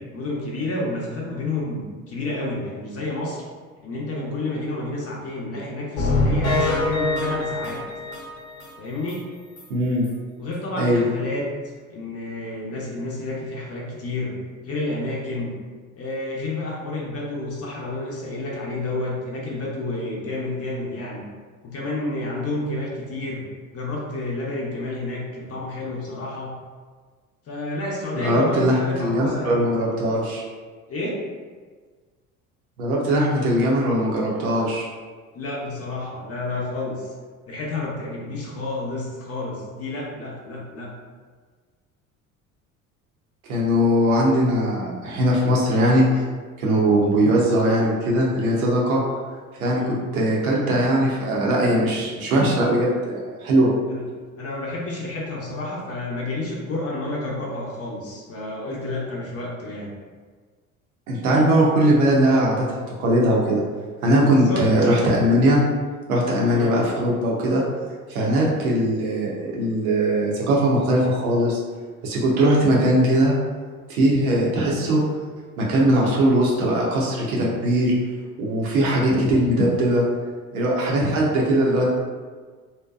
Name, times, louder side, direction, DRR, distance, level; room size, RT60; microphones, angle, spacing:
voice 1, 0.0-3.4 3.8-7.8 8.8-9.3 10.4-11.5 11.9-14.3 14.6-15.5 16.0-21.2 21.6-23.4 23.7-26.5 27.5-29.6 30.9-31.2 35.3-37.1 37.4-40.9 49.7-50.0 53.9-54.0 54.4-59.9 64.2-64.7 66.5-66.8, left 2 dB, 35° left, -3 dB, 0.7 m, -30 dB
sound 1, 6.0-8.7 9.1-9.2 9.6-9.7 10.0-10.1, left 2 dB, 65° left, 0.9 m, -24 dB
voice 2, 9.7-10.1 10.8-11.1 28.2-30.4 32.8-34.9 43.5-46.2 46.6-49.0 49.6-49.8 50.1-53.7 61.1-63.6 64.0-65.6 66.1-67.6 68.1-71.6 72.0-73.3 73.9-75.0 75.6-77.9 78.4-80.0 80.5-81.9, right 1 dB, 80° right, -3 dB, 0.7 m, -20 dB
2.6 x 2.1 x 2.3 m, 1.5 s
hypercardioid pair, 60°, 42 cm